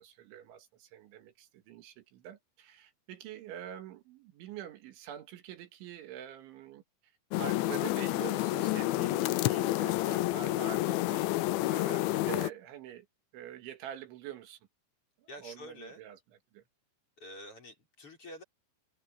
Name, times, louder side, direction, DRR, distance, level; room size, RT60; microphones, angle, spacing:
voice 1, 0.0-6.8 7.4-11.3 11.7-13.1 13.3-14.6 15.4-16.2 16.5-16.6, right 11 dB, 75° right, 4.1 m, -45 dB
sound 1, 7.3-12.5, left 17 dB, 85° left, 3.0 m, -29 dB
voice 2, 11.1-11.5 15.3-16.0 17.2-18.4, left 1 dB, 30° left, 6.1 m, -48 dB
omnidirectional pair, 5.5 m